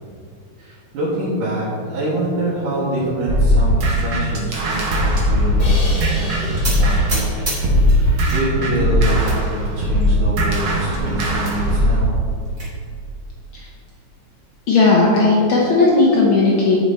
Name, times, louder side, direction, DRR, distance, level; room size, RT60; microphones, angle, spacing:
voice 1, 0.6-7.5 7.9-12.1, right 1 dB, 85° right, -9 dB, 3.0 m, -25 dB
sound 1, 3.3-7.2 7.6-12.0, equal, 50° right, 1.8 m, -18 dB
Crash cymbal, 5.6-8.7, left 1 dB, 25° left, 1.1 m, -34 dB
sound 2, 6.6-8.4 8.8-9.4 10.0-10.1 10.4-10.5 10.8-10.9 12.1-12.7, right 1 dB, 25° right, 2.3 m, -30 dB
voice 2, 14.7-16.8, left 3 dB, 80° left, -3 dB, 1.1 m, -15 dB
10.5 x 5.9 x 4.1 m, 2.3 s
omnidirectional pair, 3.5 m